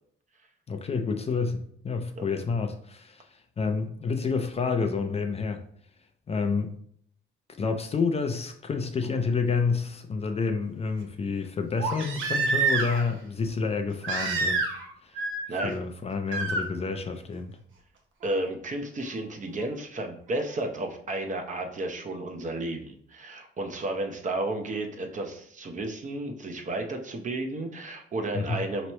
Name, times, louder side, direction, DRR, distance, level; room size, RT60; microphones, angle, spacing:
voice 1, 0.7-5.6 6.3-6.7 7.6-14.6 15.0-15.2 15.5-17.6 28.3-28.6, left 4 dB, 30° left, 0.4 m, -29 dB
Crying sobbing, 9.1-9.2 11.8-13.1 14.0-14.9 15.2-15.7 16.3-16.6 18.2-18.3, right 3 dB, 80° right, 0.8 m, -27 dB
voice 2, 18.2-28.9, right 2 dB, 40° right, 0.7 m, -32 dB
4.3 x 3.0 x 3.0 m
cardioid pair, 90°, 20 cm